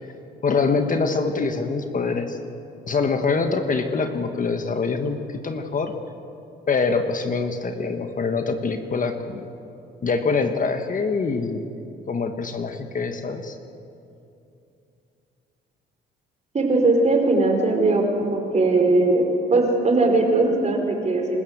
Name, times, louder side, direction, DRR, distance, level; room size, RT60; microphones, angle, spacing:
voice 1, 0.4-2.4 2.9-5.9 6.7-9.5 10.0-11.6 12.1-13.6, left 4 dB, 40° left, 6 dB, 1.6 m, -24 dB
voice 2, 16.5-21.4, right 2 dB, 35° right, 2 dB, 4.7 m, -20 dB
27.0 x 14.0 x 8.0 m, 2.7 s
cardioid pair, 90°, 20 cm